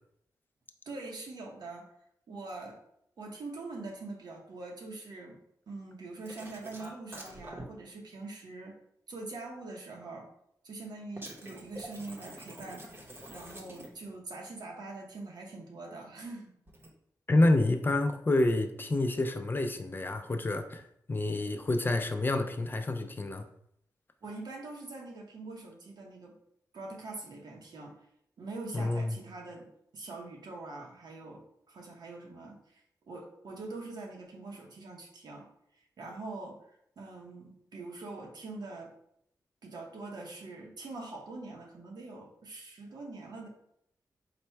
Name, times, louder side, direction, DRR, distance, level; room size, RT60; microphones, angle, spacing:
voice 1, 0.9-1.9 2.3-2.8 3.2-5.4 5.7-8.8 9.1-10.3 10.6-13.0 13.3-16.5 24.2-26.3 26.7-28.0 28.4-29.7 29.9-32.8 33.1-35.5 36.0-38.9 39.6-43.5, right 3 dB, 75° right, 0 dB, 1.0 m, -43 dB
sound 1, 6.3-7.6 11.2-14.1 16.7-16.9, right 1 dB, 35° right, 0.8 m, -46 dB
voice 2, 17.3-20.8 21.1-23.4 28.7-29.1, left 2 dB, 30° left, 7 dB, 0.4 m, -28 dB
4.2 x 2.2 x 4.4 m, 0.72 s
wide cardioid pair, 120°, 7 cm